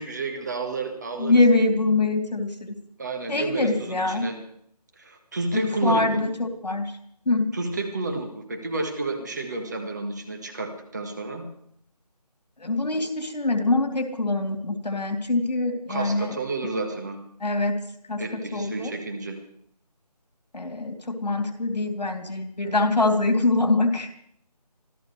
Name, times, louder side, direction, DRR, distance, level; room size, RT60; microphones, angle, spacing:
voice 1, 0.0-1.4 3.0-4.4 5.0-6.2 7.5-11.5 15.9-17.2 18.2-19.4, right 3 dB, 25° right, 4 dB, 1.5 m, -31 dB
voice 2, 1.2-2.7 3.3-4.3 5.5-7.0 7.2-7.5 12.6-16.3 17.4-17.8 18.1-18.9 20.5-24.1, left 2 dB, 75° left, 3 dB, 3.1 m, -24 dB
25.5 x 14.0 x 3.3 m, 0.68 s
figure-of-eight pair, 170°, 21 cm